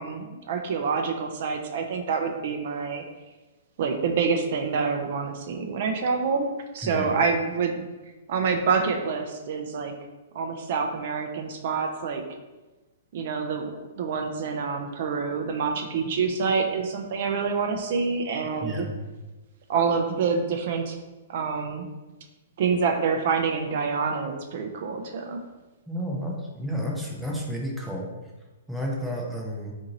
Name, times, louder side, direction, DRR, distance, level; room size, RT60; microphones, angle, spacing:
voice 1, 0.0-3.0 3.8-7.8 8.3-9.9 10.3-12.2 13.1-13.7 14.0-18.9 19.7-21.0 21.3-21.9 22.6-25.4, right 5 dB, 55° right, 4 dB, 0.4 m, -27 dB
voice 2, 18.6-19.0 25.9-28.1 28.7-29.7, equal, ahead, -3 dB, 0.5 m, -31 dB
2.8 x 2.6 x 3.9 m, 1.1 s
hypercardioid pair, 150°, 0 cm